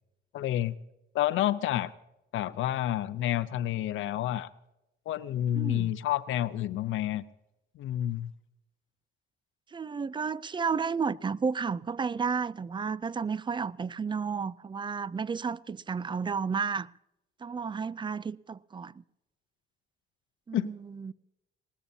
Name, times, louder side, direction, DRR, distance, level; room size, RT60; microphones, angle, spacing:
voice 1, 0.3-0.7 1.1-1.9 2.3-4.5 5.1-7.2 7.8-8.3 20.5-20.7, left 12 dB, 85° left, 0.7 m, -29 dB
voice 2, 5.5-5.9 9.7-16.9 17.4-19.0 20.5-21.1, right 5 dB, 25° right, 0.4 m, -32 dB
20.5 x 19.5 x 2.8 m
cardioid pair, 90°, 20 cm